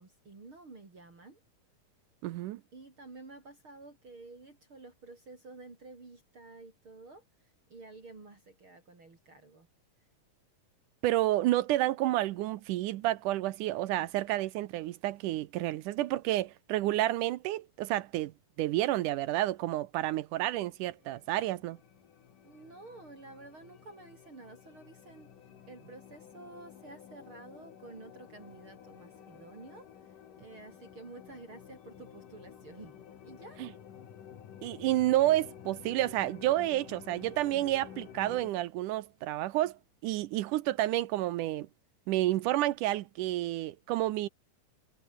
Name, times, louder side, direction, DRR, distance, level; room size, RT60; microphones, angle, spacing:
voice 1, 0.0-1.4 2.7-9.7 22.4-25.3 25.7-33.0 33.2-33.6, right 3 dB, 40° right, 5.3 m, -51 dB
voice 2, 2.2-2.6 11.0-18.3 18.6-21.8 33.6-33.7 34.6-41.7 42.1-44.3, right 15 dB, 80° right, 2.3 m, -30 dB
sound 1, 20.8-38.5, left 9 dB, 75° left, 3.9 m, -52 dB
omnidirectional pair, 3.8 m